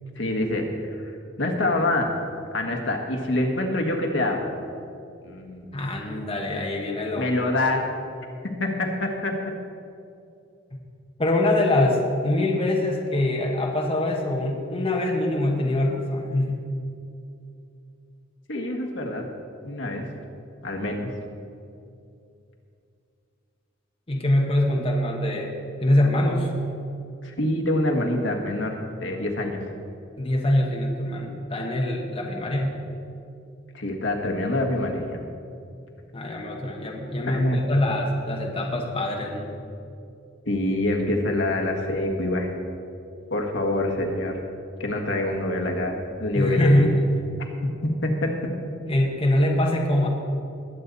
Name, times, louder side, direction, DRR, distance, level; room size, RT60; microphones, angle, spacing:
voice 1, 0.2-0.6 0.9-1.0 1.4-2.1 2.5-4.5 5.2-5.7 7.2-7.8 8.6-9.3 18.5-19.2 19.6-20.0 20.6-21.1 27.2-29.6 33.7-35.2 37.3-37.6 40.5-42.5 43.3-44.4 44.8-46.9 47.8-48.3, left 1 dB, 65° left, 2 dB, 1.6 m, -25 dB
voice 2, 5.7-7.3 11.2-16.7 24.1-25.5 25.8-26.5 30.2-32.8 36.1-39.5 46.3-47.1 48.9-50.1, left 1 dB, 30° left, -1 dB, 1.2 m, -23 dB
21.0 x 8.3 x 4.1 m, 2.6 s
head